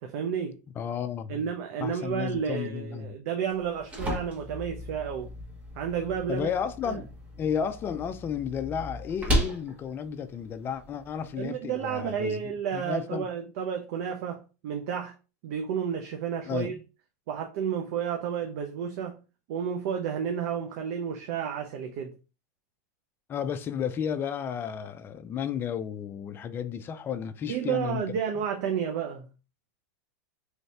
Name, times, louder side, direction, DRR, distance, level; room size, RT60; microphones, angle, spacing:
voice 1, 0.0-0.6 1.3-5.3 5.7-6.5 6.9-7.0 11.3-15.1 15.4-16.8 17.3-19.2 19.5-22.2 27.5-29.3, right 7 dB, 60° right, 0.6 m, -31 dB
voice 2, 0.8-1.5 1.8-3.2 6.3-7.1 7.4-13.3 16.5-16.8 23.3-28.0, left 7 dB, 25° left, 0.4 m, -33 dB
sound 1, 3.5-11.4, equal, 15° right, 1.0 m, -35 dB
3.2 x 2.7 x 3.2 m
supercardioid pair, 130°, 9 cm